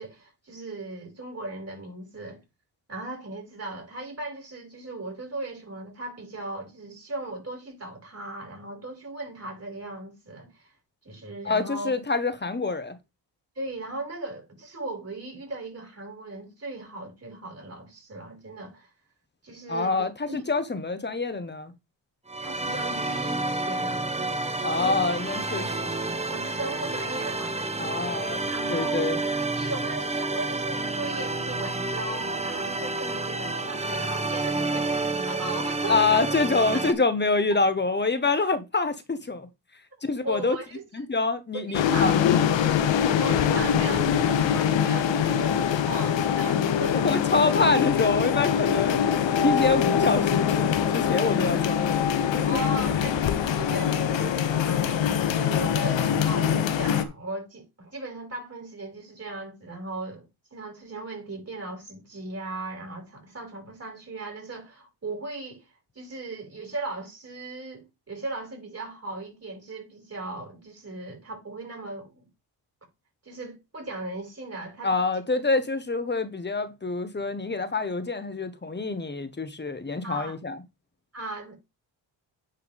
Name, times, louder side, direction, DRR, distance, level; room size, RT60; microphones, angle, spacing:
voice 1, 0.0-2.4 2.9-10.7 11.0-11.9 13.6-18.9 19.4-20.4 22.4-24.1 24.7-25.1 26.3-27.6 28.5-36.3 40.2-40.8 41.5-42.2 43.2-46.9 52.4-65.7 65.9-72.3 73.2-74.9 80.0-80.3 81.1-81.6, right 2 dB, 35° right, 6.0 m, -37 dB
voice 2, 11.4-13.0 19.7-21.7 24.6-26.2 27.8-29.2 35.9-39.5 40.0-40.6 40.9-42.3 46.9-49.0 49.4-52.0 52.3-52.4 74.8-80.6, left 3 dB, 25° left, 1.3 m, -26 dB
sound 1, 22.3-36.9, right 2 dB, 15° right, 1.1 m, -29 dB
sound 2, 41.7-57.0, left 8 dB, 80° left, 1.1 m, -23 dB
9.9 x 4.7 x 3.6 m
cardioid pair, 70°, 44 cm